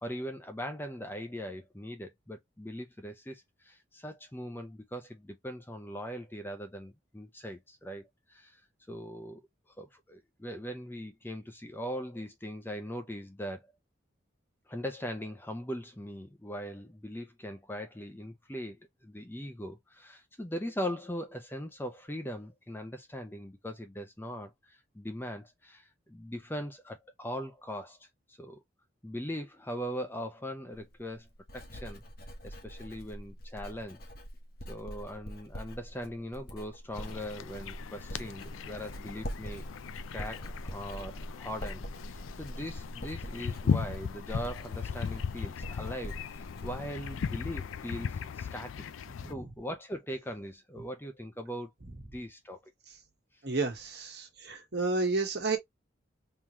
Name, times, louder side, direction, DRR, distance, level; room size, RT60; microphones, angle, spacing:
voice 1, 0.0-8.6 8.9-9.4 9.8-13.7 14.7-28.6 29.0-31.3 31.5-32.0 32.4-34.0 34.7-39.7 40.1-48.8 49.3-51.7 52.1-52.7, equal, 10° left, 0.6 m, -40 dB
Writing, 30.7-47.8 48.1-48.5, equal, 50° left, 1.0 m, -44 dB
sound 1, 36.9-49.3, left 6 dB, 85° left, 0.4 m, -37 dB
voice 2, 53.4-55.6, right 3 dB, 55° right, 1.4 m, -31 dB
3.7 x 2.9 x 3.0 m
head